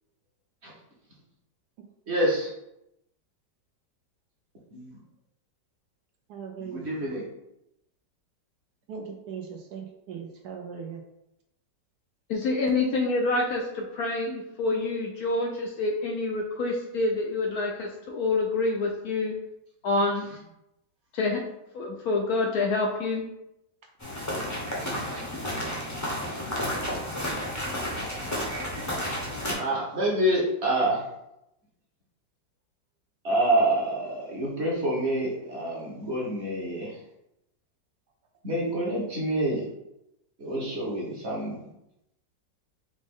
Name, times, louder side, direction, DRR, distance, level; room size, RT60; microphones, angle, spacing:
voice 1, 2.1-2.5 4.7-5.0 6.6-7.3 19.9-20.4 25.1-25.2 29.4-31.0 33.2-37.0 38.4-39.7 40.4-41.6, right 1 dB, 45° right, -4 dB, 1.1 m, -27 dB
voice 2, 6.3-7.1 8.9-11.0 29.2-29.3, right 6 dB, 70° right, 3 dB, 1.1 m, -39 dB
voice 3, 12.3-19.4 19.8-20.3 21.1-21.4 21.7-23.2, left 3 dB, 70° left, 1 dB, 0.9 m, -27 dB
sound 1, 24.0-29.5, equal, 20° left, 0.5 m, -31 dB
5.0 x 2.5 x 3.6 m, 0.85 s
omnidirectional pair, 1.9 m